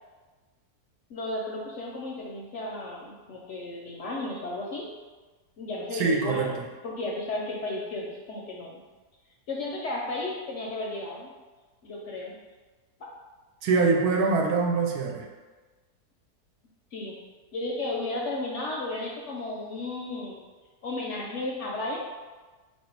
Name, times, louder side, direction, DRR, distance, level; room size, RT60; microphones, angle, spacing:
voice 1, 1.1-4.9 5.6-8.8 9.5-11.3 11.8-12.3 16.9-17.1 17.5-20.4 20.8-22.0, left 2 dB, 65° left, -3 dB, 0.7 m, -34 dB
voice 2, 5.9-6.5 13.6-15.3, right 4 dB, 80° right, 2 dB, 1.1 m, -24 dB
3.0 x 2.7 x 4.4 m, 1.3 s
omnidirectional pair, 1.6 m